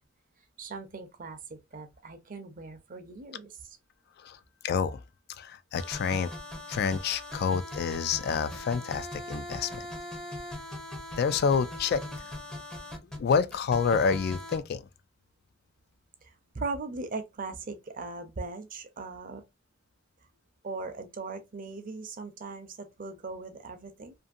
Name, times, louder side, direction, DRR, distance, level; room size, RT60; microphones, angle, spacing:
voice 1, 0.6-3.8 16.2-19.4 20.6-24.1, right 3 dB, 45° right, 0.6 m, -39 dB
voice 2, 4.6-5.0 5.4-6.3 6.7-9.8 11.2-12.0 13.1-14.9, left 6 dB, 55° left, 0.3 m, -28 dB
sound 1, 5.7-14.6, left 1 dB, 5° left, 0.5 m, -40 dB
2.6 x 2.6 x 2.4 m
head